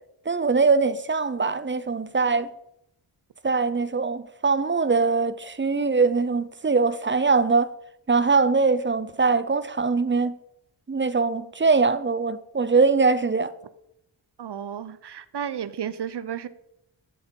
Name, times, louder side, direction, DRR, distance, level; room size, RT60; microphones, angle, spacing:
voice 1, 0.3-2.5 3.4-7.7 8.1-10.3 10.9-13.5, right 4 dB, 25° right, 0.7 m, -22 dB
voice 2, 14.4-16.5, right 9 dB, 60° right, 0.8 m, -33 dB
7.9 x 7.3 x 4.5 m
cardioid pair, 40°, 47 cm